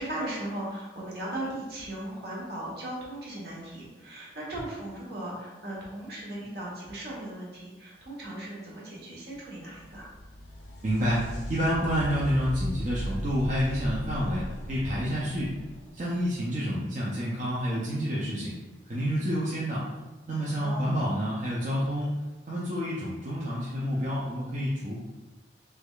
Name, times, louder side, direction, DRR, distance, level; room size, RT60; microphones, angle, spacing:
voice 1, 0.0-10.1 20.6-21.0, right 1 dB, 60° right, -5 dB, 1.0 m, -37 dB
sound 1, 9.5-17.0 20.4-20.5 21.6-21.7, equal, 80° left, 0.6 m, -38 dB
voice 2, 10.8-14.4 14.7-15.5 15.9-18.5 18.9-19.8 20.3-22.1 22.5-25.0, equal, 40° right, -7 dB, 0.5 m, -28 dB
3.5 x 3.1 x 2.3 m, 1.2 s
head